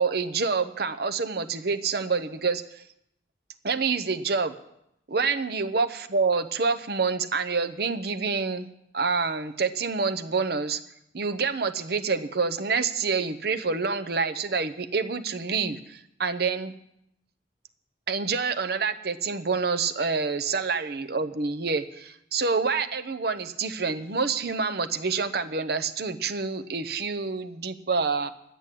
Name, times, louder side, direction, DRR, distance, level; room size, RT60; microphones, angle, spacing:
voice 1, 0.0-2.8 3.6-4.5 5.1-8.7 8.9-10.8 11.1-16.7 18.1-28.3, right 4 dB, 60° right, 9 dB, 0.8 m, -27 dB
11.5 x 9.3 x 8.4 m, 0.79 s
head